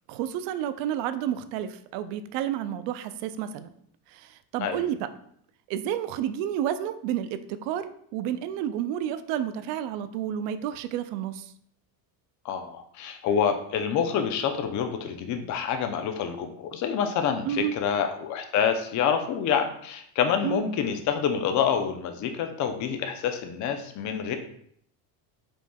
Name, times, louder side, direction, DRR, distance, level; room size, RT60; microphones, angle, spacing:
voice 1, 0.1-3.7 4.1-5.0 5.7-11.5 17.4-17.7 20.4-20.6, right 10 dB, 75° right, 12 dB, 0.5 m, -30 dB
voice 2, 12.4-24.4, left 7 dB, 40° left, 6 dB, 0.5 m, -27 dB
5.1 x 3.4 x 2.2 m, 0.67 s
supercardioid pair, 115°, 45 cm